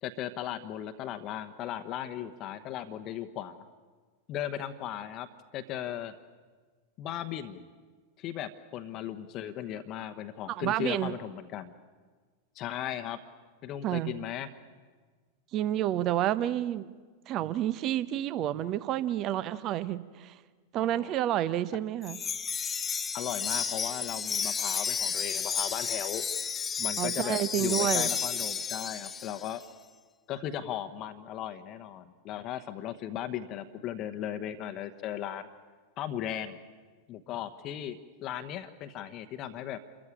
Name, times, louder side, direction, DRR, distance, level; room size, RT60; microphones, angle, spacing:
voice 1, 0.0-3.6 4.3-5.3 5.5-6.1 7.0-7.7 8.2-11.7 12.5-13.2 13.6-14.5 20.8-21.1 23.1-26.2 26.8-29.6 30.3-35.5 36.0-36.6 37.1-39.8, left 11 dB, 35° left, 8 dB, 1.0 m, -37 dB
voice 2, 10.5-11.1 13.8-14.1 15.5-16.9 17.3-20.4 20.7-22.2 27.0-28.1, right 12 dB, 35° right, 17 dB, 0.8 m, -29 dB
Wind chime, 22.0-29.5, left 6 dB, 20° left, 0.7 m, -32 dB
28.0 x 14.0 x 8.9 m, 1.5 s
figure-of-eight pair, 90°, 0 cm